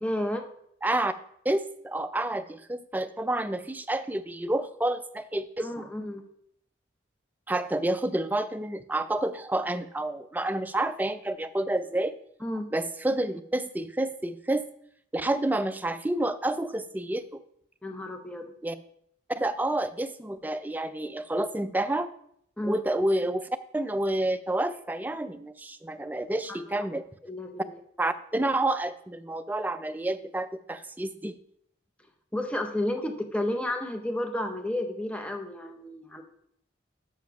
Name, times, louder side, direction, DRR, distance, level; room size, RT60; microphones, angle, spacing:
voice 1, 0.0-0.5 5.6-6.2 12.4-12.7 17.8-18.5 22.6-22.8 26.5-26.8 27.2-27.7 32.3-36.2, left 1 dB, 5° left, 5 dB, 0.8 m, -32 dB
voice 2, 0.8-1.1 1.5-5.9 7.5-12.2 12.7-14.6 15.1-17.4 18.6-18.8 19.3-22.1 22.6-27.0 28.0-31.4, right 1 dB, 10° right, 11 dB, 0.3 m, -29 dB
7.3 x 5.6 x 5.8 m, 0.71 s
head